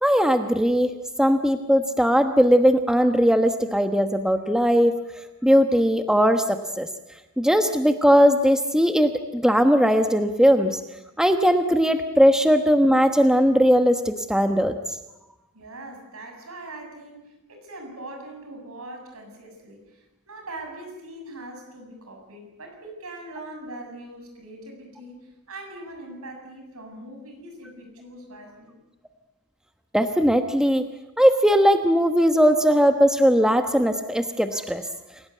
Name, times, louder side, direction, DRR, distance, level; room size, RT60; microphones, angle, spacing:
voice 1, 0.0-4.9 5.4-6.4 6.8-6.9 7.4-10.8 11.2-14.8 29.9-30.8 31.2-34.8, equal, 5° right, 7 dB, 1.1 m, -19 dB
voice 2, 15.5-28.8, right 1 dB, 70° right, 3 dB, 7.4 m, -41 dB
28.5 x 18.0 x 9.4 m, 0.96 s
head